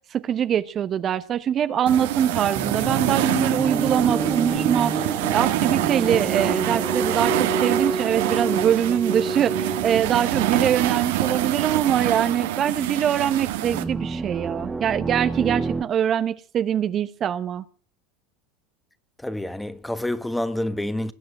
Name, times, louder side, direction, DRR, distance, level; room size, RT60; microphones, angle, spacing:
voice 1, 0.1-17.6, right 9 dB, 40° right, 0.9 m, -23 dB
sound 1, 1.9-13.8, right 14 dB, 75° right, 1.6 m, -26 dB
sound 2, 2.5-11.6 13.6-15.8, right 3 dB, 15° right, 1.1 m, -29 dB
voice 2, 19.2-21.1, left 1 dB, 5° left, 1.4 m, -28 dB
20.0 x 7.6 x 8.8 m
hypercardioid pair, 100°, 0 cm